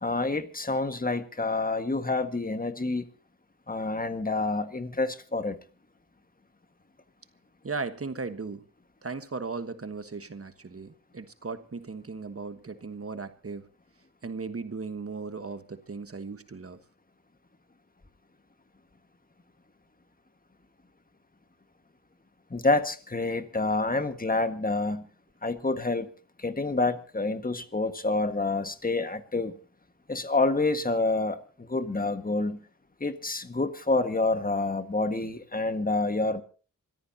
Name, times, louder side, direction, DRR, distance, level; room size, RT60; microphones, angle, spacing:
voice 1, 0.0-3.1 3.7-5.6 22.5-25.1 25.4-26.1 26.4-29.5 30.1-32.6 33.0-36.4, left 3 dB, 25° left, 9 dB, 1.7 m, -28 dB
voice 2, 7.6-8.7 9.0-13.7 14.2-16.8, right 4 dB, 45° right, 10 dB, 1.3 m, -37 dB
26.5 x 14.0 x 2.8 m, 0.38 s
cardioid pair, 60°, 32 cm